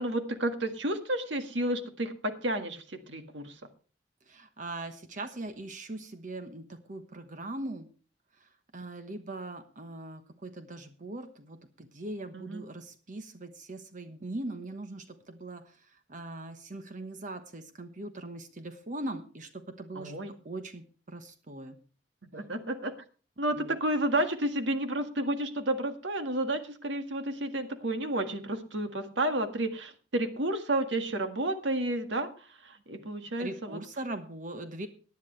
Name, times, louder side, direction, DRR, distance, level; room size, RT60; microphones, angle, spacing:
voice 1, 0.0-3.6 12.3-12.6 20.0-20.3 22.2-22.9 23.4-33.8, right 1 dB, 80° right, 7 dB, 1.7 m, -31 dB
voice 2, 4.3-7.9 8.3-21.8 23.6-23.8 33.4-34.9, right 2 dB, 45° right, 8 dB, 1.1 m, -41 dB
18.5 x 10.5 x 3.3 m, 0.37 s
head